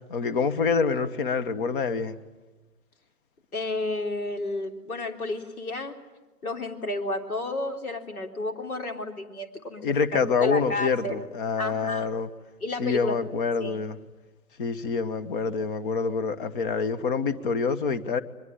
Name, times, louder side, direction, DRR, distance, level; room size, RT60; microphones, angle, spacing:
voice 1, 0.1-2.2 9.8-12.3 12.8-14.0 14.6-18.2, left 5 dB, 35° left, 11 dB, 1.4 m, -26 dB
voice 2, 3.5-6.0 6.4-9.8 10.2-11.2 11.6-12.1 12.6-13.2 13.6-13.8, left 2 dB, 65° left, 4 dB, 3.8 m, -31 dB
23.5 x 22.5 x 9.3 m, 1.2 s
figure-of-eight pair, 130°, 47 cm